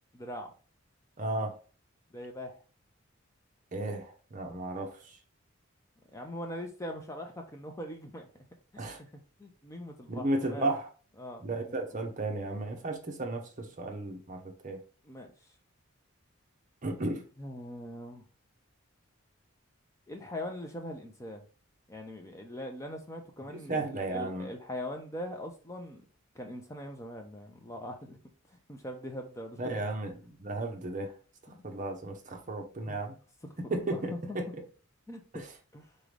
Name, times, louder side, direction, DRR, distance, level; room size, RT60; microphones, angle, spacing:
voice 1, 0.1-0.5 2.1-2.6 6.1-8.3 8.7-8.9 9.4-10.7 11.2-11.8 15.0-15.3 17.4-18.2 20.1-21.4 21.9-26.0 26.3-28.2 28.7-29.8 31.5-31.7 32.9-33.0 33.4-33.5 33.9-34.4 35.1-35.4 35.7-35.9, left 1 dB, 15° left, 3 dB, 0.6 m, -41 dB
voice 2, 1.2-1.5 3.7-4.9 8.8-9.0 10.1-10.9 11.4-14.8 16.8-17.2 23.7-24.5 29.6-31.1 31.6-33.1 33.7-34.4 35.3-35.4, right 2 dB, 35° right, 3 dB, 0.8 m, -34 dB
4.0 x 3.7 x 3.3 m, 0.38 s
head